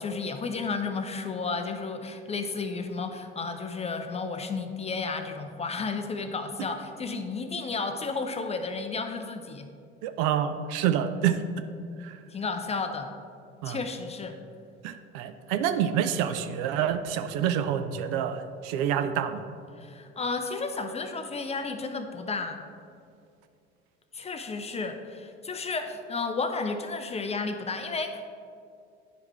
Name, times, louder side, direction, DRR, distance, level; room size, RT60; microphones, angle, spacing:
voice 1, 0.0-9.7 12.3-13.1 13.6-14.4 19.8-22.6 24.1-28.3, left 4 dB, 20° left, 6 dB, 0.5 m, -32 dB
voice 2, 10.0-11.4 12.0-12.1 13.6-13.8 14.8-19.4, right 9 dB, 55° right, 9 dB, 0.5 m, -27 dB
9.9 x 4.7 x 3.2 m, 2.4 s
figure-of-eight pair, 60°, 33 cm